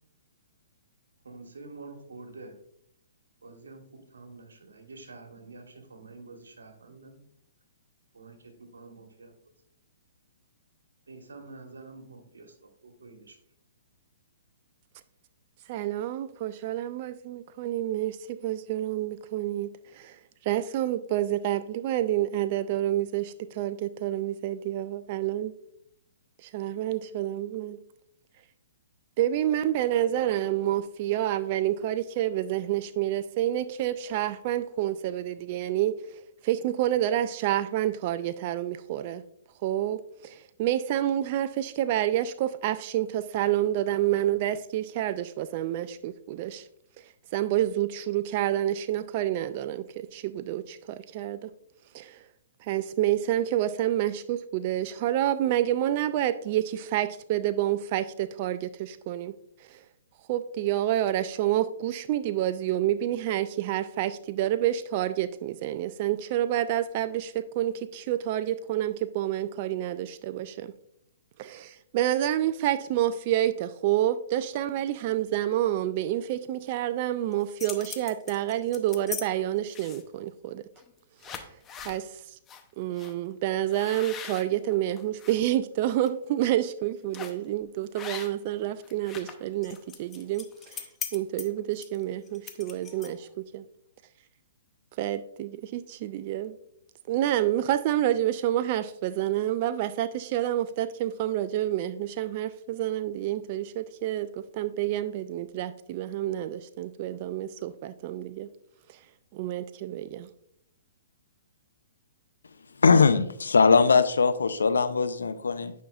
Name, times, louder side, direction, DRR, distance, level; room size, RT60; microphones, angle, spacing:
voice 1, 1.2-2.6 3.4-7.2 8.1-9.3 11.1-13.4, right 3 dB, 85° right, 5 dB, 1.4 m, -47 dB
voice 2, 15.7-25.5 26.4-27.8 29.2-36.0 36.4-39.2 39.6-46.7 47.0-47.1 47.3-51.5 51.9-52.2 52.6-59.4 59.7-59.8 60.3-70.7 71.4-80.6 81.3-81.5 81.8-82.4 82.8-90.8 91.1-93.6 95.0-96.6 97.1-108.5 108.9-109.0 109.3-110.3, right 12 dB, 45° right, 12 dB, 0.3 m, -28 dB
sound 1, 77.3-79.2 79.7-80.2 80.8-80.9 81.2-82.0 82.5-82.6 83.0-83.1 83.7-85.4 85.8-86.1 87.1-87.5 87.9-88.5 88.8-93.3, left 7 dB, 20° left, 0.7 m, -40 dB
voice 3, 112.8-115.7, left 4 dB, 85° left, 12 dB, 0.5 m, -21 dB
9.2 x 5.6 x 2.4 m, 0.71 s
hypercardioid pair, 130°, 0 cm